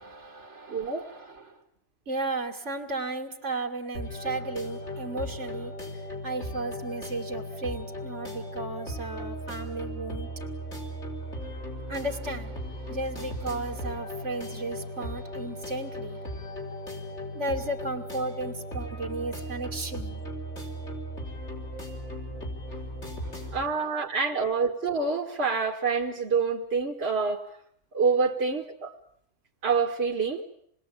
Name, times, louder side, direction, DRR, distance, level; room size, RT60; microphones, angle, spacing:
voice 1, 0.0-1.6 2.1-10.3 11.9-16.2 17.3-20.2 22.7-22.8 23.2-23.5, right 2 dB, 80° right, 4 dB, 2.6 m, -35 dB
voice 2, 0.7-1.0 23.5-27.4 27.9-28.9 29.6-30.4, right 5 dB, 60° right, 1 dB, 1.9 m, -26 dB
sound 1, 3.9-23.6, equal, 75° left, 5.1 m, -37 dB
27.5 x 20.5 x 8.6 m, 0.67 s
omnidirectional pair, 1.2 m